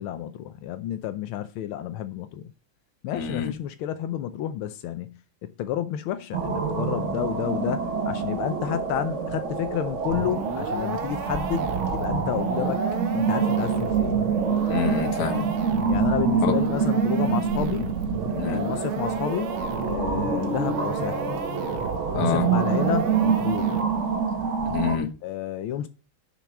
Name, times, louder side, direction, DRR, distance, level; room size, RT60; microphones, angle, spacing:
voice 1, 0.0-2.5 3.0-12.8 13.1-14.2 15.9-17.9 18.4-19.6 19.8-21.3 22.1-23.8 25.2-25.9, left 11 dB, 85° left, 1.5 m, -30 dB
voice 2, 3.1-3.5 14.7-15.5 16.4-16.5 18.4-18.6 22.1-22.5 24.7-25.1, left 7 dB, 55° left, 1.6 m, -26 dB
sound 1, 6.3-25.0, right 6 dB, 45° right, 1.0 m, -26 dB
sound 2, 10.1-24.2, right 5 dB, 80° right, 1.8 m, -35 dB
6.9 x 6.0 x 6.1 m
omnidirectional pair, 2.3 m